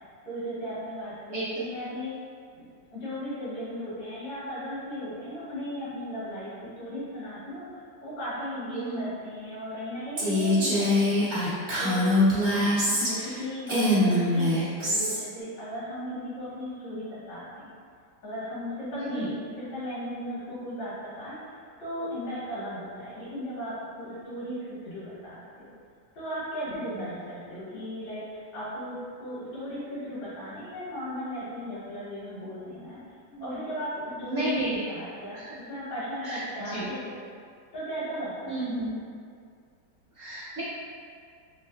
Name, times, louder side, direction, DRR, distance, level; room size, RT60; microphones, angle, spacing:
voice 1, 0.2-2.1 2.5-2.6 2.9-7.6 8.0-11.3 11.8-12.0 12.9-17.7 18.2-21.4 21.8-24.6 24.8-25.7 26.1-33.0 33.4-33.9 34.2-37.2 37.7-38.7, equal, 75° left, -11 dB, 2.0 m, -36 dB
voice 2, 8.7-9.1 12.5-12.9 19.1-19.3 33.3-33.5 34.2-34.8 35.3-35.4 36.2-36.9 38.5-39.0 40.2-40.6, right 2 dB, 60° right, -11 dB, 0.8 m, -33 dB
Female speech woman speaking, 10.2-13.4 13.7-15.2, left 1 dB, 90° right, 0.4 m, -24 dB
4.0 x 2.4 x 2.2 m, 2.2 s
omnidirectional pair, 2.0 m